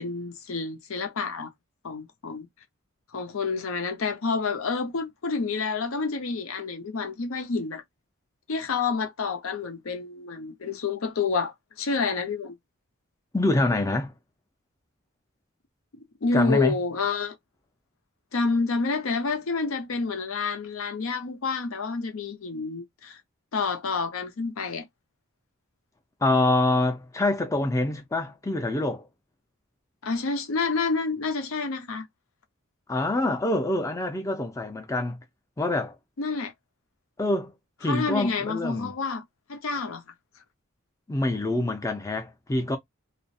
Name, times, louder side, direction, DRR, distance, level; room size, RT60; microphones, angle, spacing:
voice 1, 0.0-1.5 1.8-2.5 3.1-7.8 8.5-12.5 16.2-17.4 18.3-23.2 23.5-24.8 30.0-32.0 36.2-36.5 37.8-39.2 39.5-40.0, left 4 dB, 75° left, 0.6 m, -28 dB
voice 2, 13.3-14.1 16.3-16.7 26.2-29.1 32.9-35.2 35.6-35.9 37.2-37.5 37.8-38.9 41.1-42.8, left 2 dB, 15° left, 0.4 m, -25 dB
2.4 x 2.0 x 2.5 m
head